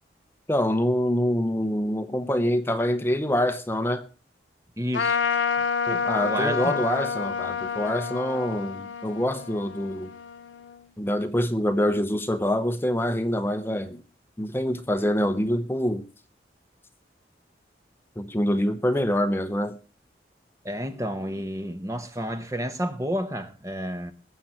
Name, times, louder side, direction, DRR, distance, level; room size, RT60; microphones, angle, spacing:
voice 1, 0.5-4.1 6.0-10.1 11.0-14.0 14.4-16.1 18.2-19.8, equal, 10° left, 0.7 m, -25 dB
voice 2, 4.8-5.2 5.9-6.8 20.6-24.1, equal, 15° right, 1.0 m, -31 dB
Trumpet, 4.9-10.8, left 6 dB, 90° left, 0.8 m, -29 dB
20.5 x 7.4 x 4.3 m
head